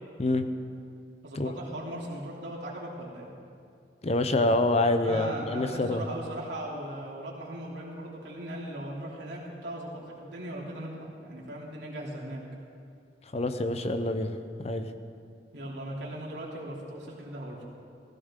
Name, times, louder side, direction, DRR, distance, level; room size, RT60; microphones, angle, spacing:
voice 1, 1.2-3.3 5.0-12.4 15.5-17.6, right 1 dB, 85° right, -4 dB, 3.1 m, -38 dB
voice 2, 4.0-6.0 13.3-14.9, left 2 dB, 35° left, 8 dB, 0.7 m, -26 dB
16.5 x 15.5 x 3.7 m, 2.5 s
head